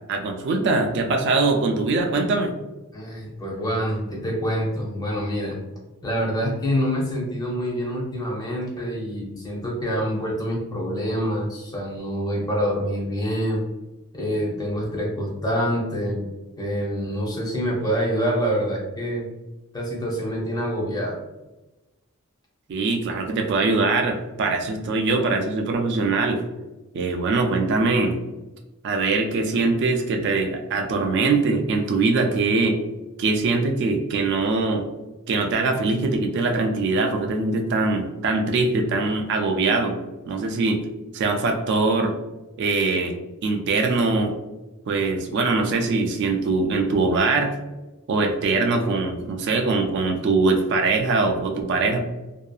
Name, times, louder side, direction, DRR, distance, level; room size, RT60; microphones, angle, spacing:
voice 1, 0.1-2.5 22.7-26.4 26.9-28.2 28.8-32.8 33.2-34.9 35.3-40.0 40.3-40.8 41.1-42.1 42.6-43.1 43.4-44.3 44.9-47.5 48.1-52.0, right 3 dB, 55° right, 3 dB, 0.3 m, -22 dB
voice 2, 2.9-5.6 6.0-13.7 14.1-16.3 16.6-19.3 19.7-21.2, equal, 20° left, -2 dB, 0.6 m, -26 dB
2.6 x 2.3 x 2.2 m, 1.1 s
head